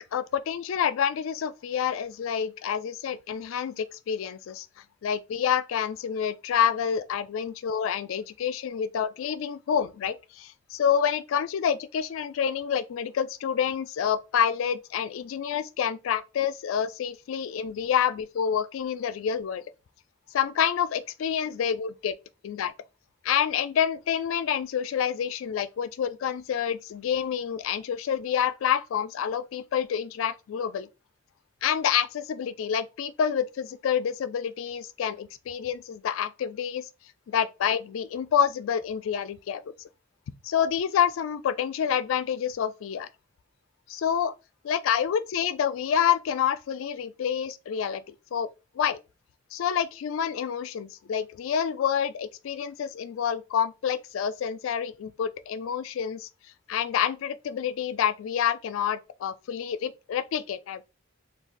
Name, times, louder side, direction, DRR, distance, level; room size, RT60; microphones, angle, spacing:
voice 1, 0.1-4.7 5.0-19.6 20.3-22.2 22.4-22.7 23.2-30.9 31.6-36.9 37.3-39.7 40.4-43.1 43.9-44.3 44.6-48.5 48.8-49.0 49.5-56.3 56.7-60.8, left 8 dB, 75° left, 0.3 m, -28 dB
2.5 x 2.3 x 3.7 m
head